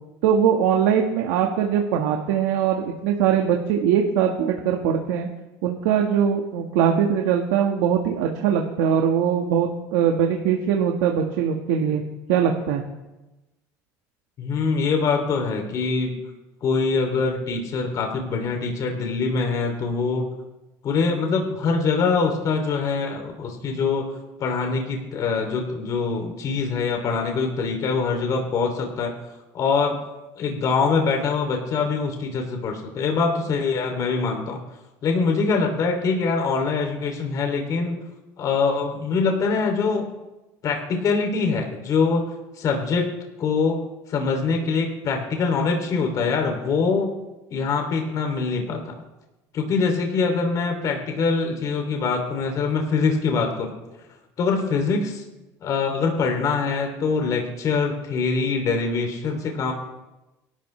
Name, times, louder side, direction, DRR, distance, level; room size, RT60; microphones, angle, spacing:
voice 1, 0.2-5.3 5.6-12.0 12.3-12.8, right 8 dB, 85° right, 2 dB, 1.6 m, -21 dB
voice 2, 14.4-16.2 16.6-20.3 20.8-24.0 24.4-29.1 29.5-30.0 30.4-34.6 35.0-38.0 38.4-40.1 40.6-42.2 42.6-43.1 43.4-43.8 44.1-47.1 47.5-48.9 49.5-53.7 54.4-55.2 55.6-59.7, left 4 dB, 45° left, 3 dB, 2.9 m, -23 dB
28.5 x 12.5 x 3.3 m, 1.0 s
cardioid pair, 125°, 8 cm